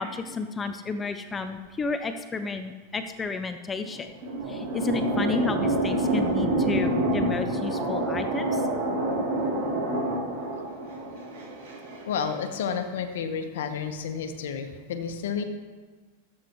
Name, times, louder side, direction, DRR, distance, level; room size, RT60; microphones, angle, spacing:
voice 1, 0.0-4.1 4.5-8.7, left 4 dB, 15° left, 8 dB, 0.4 m, -31 dB
sound 1, 3.7-12.3, right 1 dB, 60° right, 3.4 m, -27 dB
voice 2, 12.1-15.4, left 6 dB, 80° left, 6 dB, 1.1 m, -31 dB
13.5 x 7.8 x 3.1 m, 1.3 s
supercardioid pair, 140°, 0 cm